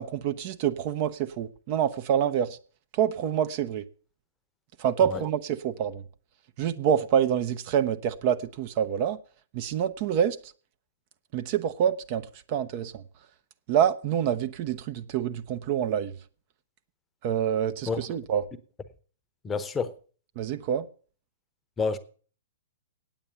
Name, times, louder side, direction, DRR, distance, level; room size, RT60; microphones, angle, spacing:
voice 1, 0.0-2.6 2.9-3.8 4.8-6.0 6.6-9.2 9.5-10.5 11.3-13.0 13.7-16.1 17.2-18.5 20.4-20.9, right 9 dB, 45° right, 0.7 m, -27 dB
voice 2, 19.4-19.9 21.8-22.0, left 5 dB, 15° left, 0.8 m, -28 dB
8.9 x 8.7 x 6.8 m
figure-of-eight pair, 115°, 0 cm